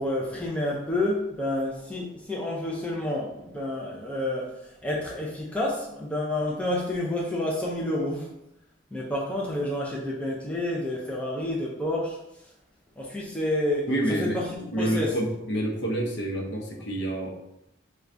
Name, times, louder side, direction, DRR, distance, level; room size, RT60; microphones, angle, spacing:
voice 1, 0.0-8.3 8.9-12.2 13.0-13.9 14.2-14.5 14.8-15.1, left 1 dB, 5° left, -4 dB, 0.4 m, -29 dB
voice 2, 13.9-17.3, right 1 dB, 60° left, -1 dB, 0.6 m, -28 dB
4.4 x 2.2 x 2.5 m, 0.84 s
head